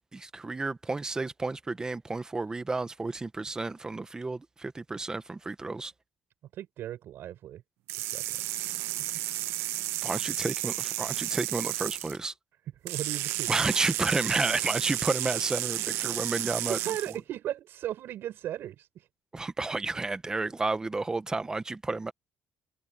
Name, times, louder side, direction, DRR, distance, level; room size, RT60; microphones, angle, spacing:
voice 1, 0.1-5.9 10.0-12.3 13.5-16.8 19.3-22.1, right 3 dB, 15° right, 1.3 m, -31 dB
voice 2, 6.5-7.6 8.0-8.2 9.0-9.1 12.8-13.5 16.6-19.1, right 12 dB, 65° right, 7.6 m, -37 dB
sound 1, 7.9-12.2 12.9-17.2, right 15 dB, 90° right, 1.1 m, -32 dB
cardioid pair, 130°, 4 cm